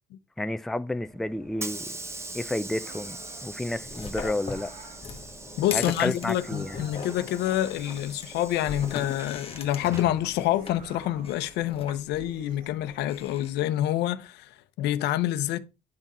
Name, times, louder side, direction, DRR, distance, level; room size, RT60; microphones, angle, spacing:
voice 1, 0.4-2.0 2.3-4.7 5.7-6.8, left 1 dB, ahead, 0.4 m, -31 dB
Hiss / Sliding door, 0.9-11.7, right 2 dB, 15° right, 0.8 m, -42 dB
sound 1, 2.7-3.6 4.3-5.1 6.2-7.3 8.5-9.7 10.4-11.4 12.1-13.1, right 4 dB, 55° right, 1.9 m, -50 dB
sound 2, 3.7-13.5, left 5 dB, 35° left, 1.3 m, -41 dB
voice 2, 5.6-15.6, left 13 dB, 85° left, 0.8 m, -27 dB
10.5 x 3.7 x 4.1 m
cardioid pair, 110°, 17 cm